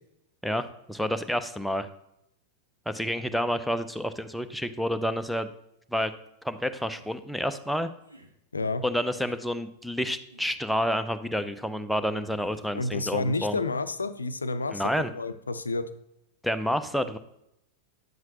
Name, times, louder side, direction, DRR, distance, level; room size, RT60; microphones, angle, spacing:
voice 1, 0.4-1.9 2.9-5.5 5.9-6.1 6.4-7.9 8.8-13.6 14.7-15.1 16.4-17.2, equal, ahead, 9 dB, 0.6 m, -29 dB
sound 1, 6.9-7.2 8.0-8.3 9.1-9.4 10.3-10.6 11.3-11.6 12.4-12.8, right 2 dB, 85° right, 1.0 m, -53 dB
voice 2, 8.5-8.8 12.7-14.8 15.1-15.9, left 3 dB, 75° left, 12 dB, 0.5 m, -30 dB
9.3 x 7.6 x 2.9 m, 0.81 s
figure-of-eight pair, 90°, 0 cm